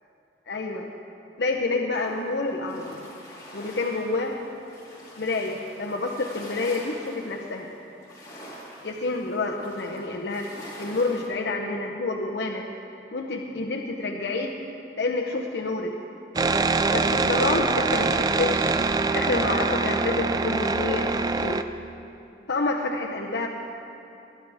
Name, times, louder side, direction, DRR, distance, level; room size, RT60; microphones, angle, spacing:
voice 1, 0.5-0.9 1.4-3.0 3.5-4.4 5.2-7.7 8.8-10.5 10.8-12.7 13.1-14.6 15.0-15.9 16.9-18.7 19.1-21.6 22.5-23.5, left 3 dB, 80° left, 0 dB, 0.8 m, -28 dB
sound 1, 1.9-11.3, equal, 20° left, 3.0 m, -45 dB
sound 2, 16.4-21.6, right 3 dB, 20° right, 0.3 m, -24 dB
20.5 x 11.5 x 3.5 m, 2.8 s
head